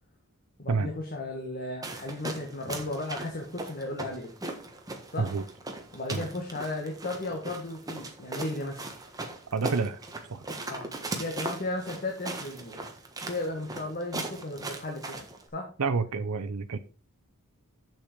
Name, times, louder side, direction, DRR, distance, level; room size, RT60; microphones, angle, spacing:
voice 1, 0.6-4.3 5.1-5.3 5.9-8.9 10.7-10.9 11.2-12.8 13.3-15.7, left 2 dB, 40° left, 1 dB, 1.7 m, -35 dB
sound 1, 1.8-15.4, right 2 dB, 15° right, 1.4 m, -39 dB
voice 2, 9.5-10.0 10.3-10.4 15.8-16.8, right 4 dB, 85° right, 9 dB, 0.6 m, -28 dB
7.5 x 6.7 x 5.1 m, 0.37 s
head